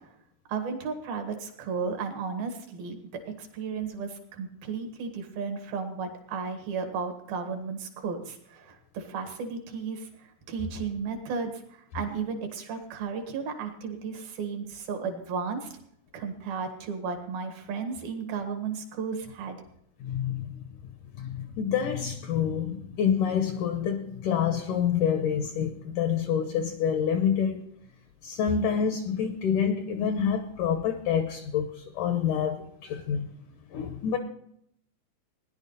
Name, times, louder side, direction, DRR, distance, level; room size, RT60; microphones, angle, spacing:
voice 1, 0.5-15.7 16.1-19.6, right 5 dB, 70° right, 3.4 m, -34 dB
voice 2, 20.0-20.5 21.2-27.6 28.2-33.3 33.7-34.2, left 8 dB, 75° left, 2.0 m, -27 dB
17.5 x 10.5 x 4.0 m
omnidirectional pair, 4.6 m